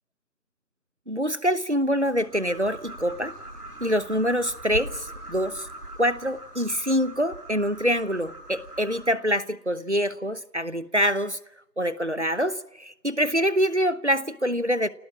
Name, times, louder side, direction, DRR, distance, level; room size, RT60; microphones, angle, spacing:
voice 1, 1.1-3.3 3.8-5.7 6.0-11.4 11.8-14.9, equal, 45° right, 0.9 m, -25 dB
sound 1, 2.0-9.1, right 1 dB, 65° right, 7.7 m, -41 dB
27.0 x 18.5 x 7.2 m
figure-of-eight pair, 180°, 50 cm